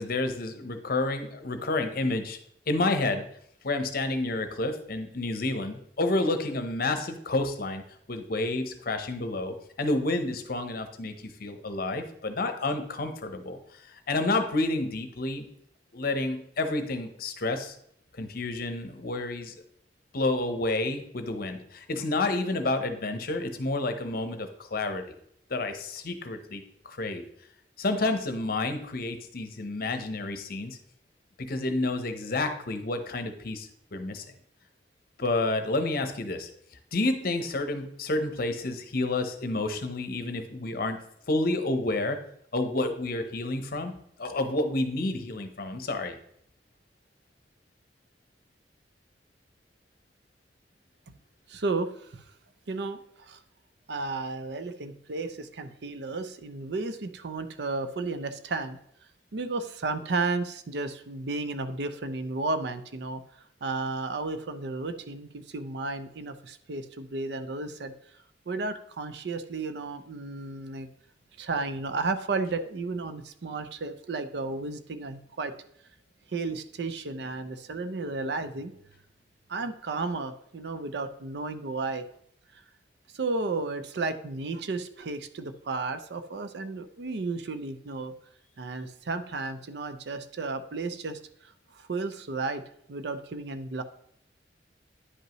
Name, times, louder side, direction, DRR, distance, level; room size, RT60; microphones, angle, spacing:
voice 1, 0.0-2.4 2.7-3.2 3.6-7.8 8.1-15.5 15.9-17.7 18.2-19.5 20.1-25.0 25.5-27.2 27.8-30.8 31.4-34.2 35.2-36.5 36.9-41.0 41.3-42.2 42.5-43.9 44.2-46.2, left 2 dB, 55° left, 8 dB, 0.8 m, -30 dB
voice 2, 51.5-52.2 52.7-53.4 53.9-58.8 59.3-63.2 63.6-67.9 68.5-70.9 71.4-75.5 76.3-78.7 79.5-82.1 82.5-82.6 83.1-88.1 88.6-91.2 91.7-93.8, right 3 dB, 70° right, 11 dB, 0.6 m, -33 dB
9.8 x 5.4 x 3.0 m, 0.71 s
head